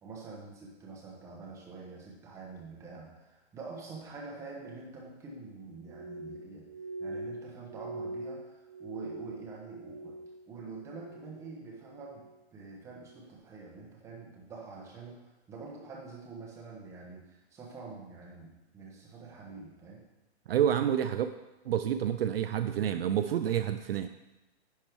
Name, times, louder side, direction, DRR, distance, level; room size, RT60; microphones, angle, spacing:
voice 1, 0.0-6.7 7.0-10.1 10.5-15.2 15.5-20.0, right 4 dB, 10° right, -2 dB, 1.1 m, -46 dB
Glass, 5.8-10.4 10.7-11.4 11.8-12.3 12.9-13.2, right 2 dB, 35° right, 1.7 m, -43 dB
voice 2, 20.5-21.3 21.7-24.1, right 9 dB, 60° right, 9 dB, 0.5 m, -28 dB
10.5 x 5.3 x 4.7 m, 1.0 s
hypercardioid pair, 170°, 34 cm